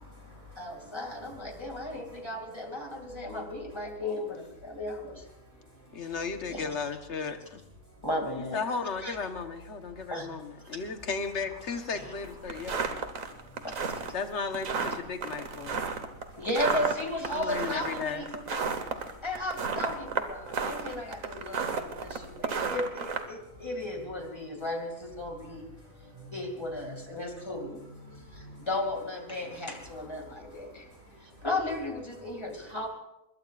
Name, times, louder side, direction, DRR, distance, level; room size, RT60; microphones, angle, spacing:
voice 1, 0.0-1.3 1.6-2.2 5.9-6.0 12.5-12.6 13.3-13.7 16.3-16.4 20.4-20.6 21.7-21.8 22.6-22.7 25.8-26.4 26.9-27.7 28.0-28.7 29.6-29.8 30.2-31.5, equal, 50° right, -4 dB, 7.4 m, -51 dB
voice 2, 0.6-5.2 6.5-6.7 8.0-8.6 9.0-9.2 10.1-10.3 13.6-13.9 16.4-18.7 19.2-25.7 26.3-27.8 28.3-30.9 31.2-32.9, left 1 dB, 20° left, 3 dB, 2.4 m, -35 dB
voice 3, 5.9-7.6 8.4-12.9 14.1-15.8 17.3-18.3, left 5 dB, 60° left, 7 dB, 1.5 m, -35 dB
sound 1, 12.2-23.2, right 5 dB, 85° right, 1.7 m, -32 dB
21.5 x 21.0 x 2.5 m, 0.89 s
omnidirectional pair, 1.4 m